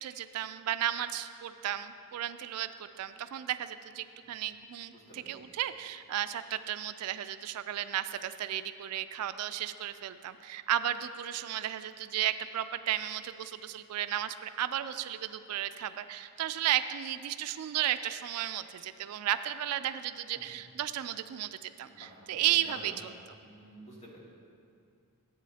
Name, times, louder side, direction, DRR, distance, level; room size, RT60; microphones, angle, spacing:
voice 1, 0.0-23.1, right 12 dB, 80° right, 12 dB, 0.3 m, -34 dB
voice 2, 4.9-5.3 21.9-22.4 22.7-22.9 23.4-24.2, equal, 30° left, -5 dB, 1.9 m, -50 dB
13.0 x 8.3 x 2.8 m, 2.4 s
head